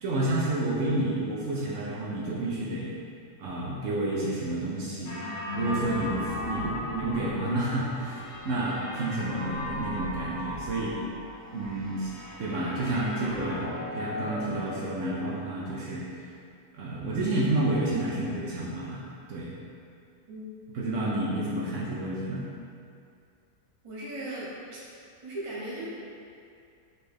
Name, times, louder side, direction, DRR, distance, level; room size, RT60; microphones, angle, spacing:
voice 1, 0.0-2.9 3.4-5.2 5.5-11.0 11.5-12.1 12.4-16.2 16.7-19.0 19.3-19.5 20.7-22.4, right 1 dB, 70° right, -6 dB, 0.9 m, -30 dB
sound 1, 5.1-15.2, left 1 dB, 65° left, 0.9 m, -37 dB
voice 2, 23.8-24.8 25.2-25.9, right 1 dB, 25° right, -8 dB, 0.9 m, -37 dB
4.1 x 3.3 x 3.4 m, 2.4 s
omnidirectional pair, 1.4 m